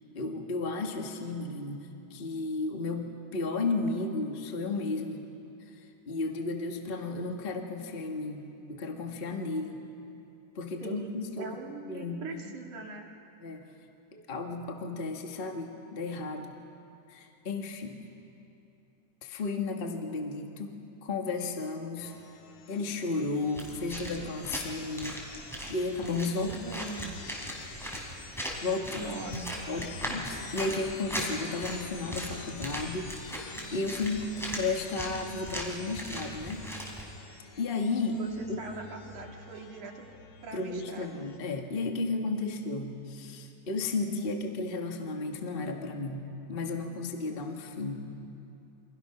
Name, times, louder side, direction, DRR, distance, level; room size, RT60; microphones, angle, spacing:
voice 1, 0.1-5.2 5.7-9.8 10.5-11.5 11.9-12.6 13.4-13.7 14.1-16.5 17.1-18.0 19.2-22.1 22.7-25.2 25.7-26.6 28.6-29.0 29.7-37.1 37.6-38.2 38.5-38.6 40.5-48.1, left 3 dB, 30° left, 3 dB, 1.0 m, -34 dB
voice 2, 10.8-13.1 26.4-27.2 28.9-29.4 29.7-29.9 38.2-40.1 40.4-41.3, right 3 dB, 70° right, 1 dB, 3.5 m, -42 dB
sound 1, 22.0-41.4, left 5 dB, 65° left, 2.7 m, -49 dB
sound 2, 23.5-37.0, equal, ahead, 3.7 m, -39 dB
28.5 x 25.5 x 5.9 m, 2.7 s
omnidirectional pair, 3.7 m